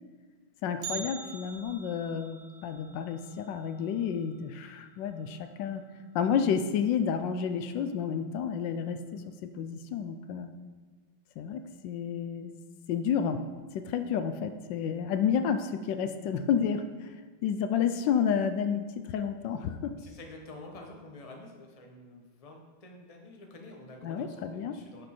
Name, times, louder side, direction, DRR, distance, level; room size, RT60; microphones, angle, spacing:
voice 1, 0.6-5.8 6.1-9.0 9.4-10.5 11.4-12.5 12.9-13.4 13.7-17.1 17.4-18.8 19.1-19.9 24.0-24.7, left 7 dB, 75° left, 8 dB, 1.1 m, -30 dB
Bell, 0.8-4.9 5.2-5.3 5.8-5.9 6.7-6.8 7.5-7.8 8.2-8.3, right 7 dB, 60° right, 0.6 m, -45 dB
voice 2, 19.9-25.0, left 2 dB, 35° left, 2 dB, 0.6 m, -48 dB
10.5 x 5.2 x 4.3 m, 1.4 s
omnidirectional pair, 2.3 m